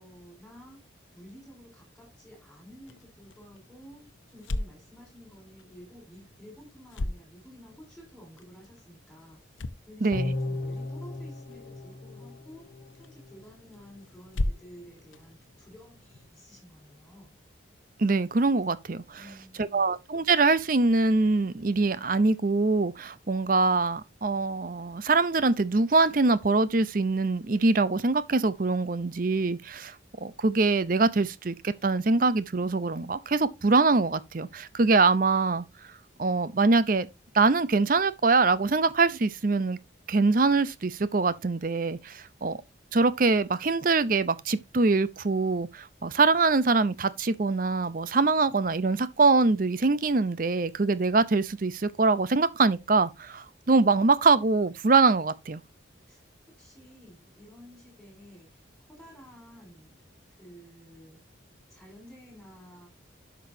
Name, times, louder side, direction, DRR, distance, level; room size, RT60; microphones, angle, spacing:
voice 1, 0.0-9.4 9.9-17.3 19.1-19.9 56.1-59.9 60.4-61.2 61.7-62.9, equal, 5° left, 4.6 m, -51 dB
sound 1, 2.7-16.3, left 1 dB, 85° left, 0.8 m, -40 dB
voice 2, 10.0-10.3 18.0-19.2 19.6-30.0 30.2-35.6 36.2-37.1 37.3-39.8 40.1-42.6 42.9-55.6, right 3 dB, 45° right, 0.6 m, -24 dB
sound 2, 10.1-13.4 13.8-13.9, left 2 dB, 60° left, 1.6 m, -35 dB
11.0 x 6.1 x 2.7 m
head